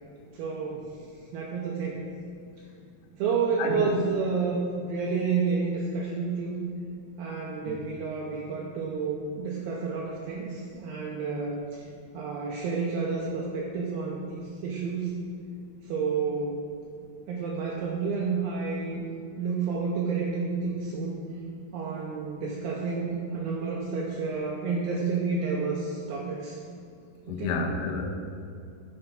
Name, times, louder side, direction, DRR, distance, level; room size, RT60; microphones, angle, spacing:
voice 1, 0.3-0.9 1.3-2.0 3.2-6.6 7.2-11.8 12.1-15.1 15.9-16.6 17.3-19.1 19.4-21.2 21.7-26.6 27.3-27.5, right 5 dB, 80° right, -2 dB, 2.1 m, -30 dB
voice 2, 3.6-3.9 7.7-7.8 27.3-28.1, left 4 dB, 85° left, 2 dB, 1.9 m, -30 dB
9.1 x 3.4 x 5.6 m, 2.4 s
omnidirectional pair, 4.5 m